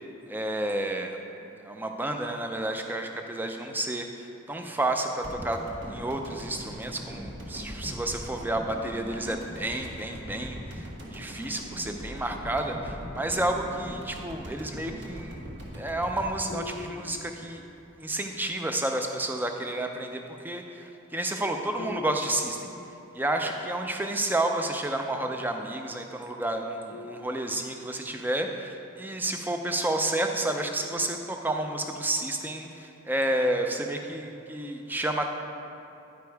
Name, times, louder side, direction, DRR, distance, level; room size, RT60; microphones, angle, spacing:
voice 1, 0.3-1.2 1.6-15.5 15.7-17.6 18.0-22.7 23.1-35.3, right 1 dB, 10° right, 4 dB, 0.4 m, -30 dB
sound 1, 5.2-17.6 17.9-18.0, equal, 50° right, 1.2 m, -40 dB
sound 2, 16.5-18.2 21.8-23.6 26.9-28.4 30.4-31.6, left 3 dB, 70° left, 0.4 m, -45 dB
10.0 x 5.2 x 4.6 m, 2.9 s
head